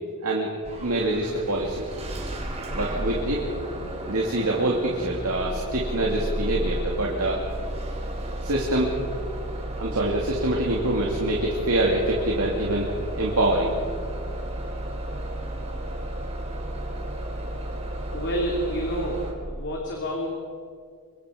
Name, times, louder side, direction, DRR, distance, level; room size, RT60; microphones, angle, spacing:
Bus / Engine starting, 0.6-19.3, right 1 dB, 30° right, 3.8 m, -33 dB
voice 1, 0.8-1.8 2.7-3.5 4.1-7.4 8.4-8.9 9.8-12.9 13.2-13.7, right 1 dB, 75° right, -2 dB, 2.5 m, -25 dB
voice 2, 18.1-20.3, equal, 55° left, -1 dB, 2.9 m, -29 dB
25.5 x 23.0 x 5.1 m, 2.1 s
head